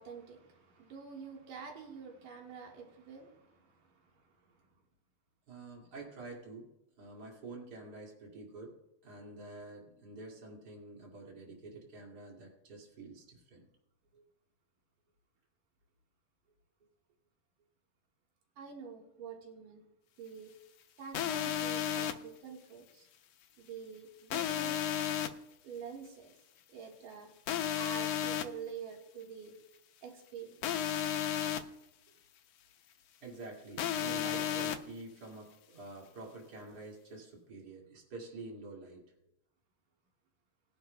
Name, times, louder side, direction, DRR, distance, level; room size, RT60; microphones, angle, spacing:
voice 1, 0.0-4.6 18.6-19.8 20.2-20.5 21.0-23.1 23.6-24.8 25.6-26.3 26.7-27.3 27.8-29.6 30.0-30.9, right 6 dB, 85° right, 0 dB, 3.3 m, -47 dB
voice 2, 5.5-6.7 7.0-8.7 9.0-13.7 14.1-14.2 33.2-39.0, right 3 dB, 35° right, -1 dB, 2.6 m, -48 dB
sound 1, 21.1-22.1 24.3-25.3 27.5-28.4 30.6-31.6 33.8-34.8, left 10 dB, 80° left, 1.5 m, -33 dB
20.5 x 10.5 x 2.3 m, 0.90 s
omnidirectional pair, 3.7 m